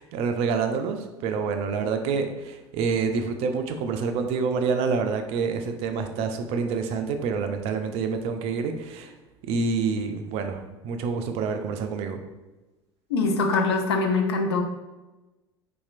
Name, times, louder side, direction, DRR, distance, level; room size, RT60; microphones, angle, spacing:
voice 1, 0.0-9.1 9.5-12.2, right 5 dB, 45° right, 6 dB, 0.4 m, -27 dB
voice 2, 13.1-14.7, left 3 dB, 65° left, 4 dB, 0.5 m, -23 dB
4.1 x 2.3 x 2.4 m, 1.1 s
figure-of-eight pair, 70°, 14 cm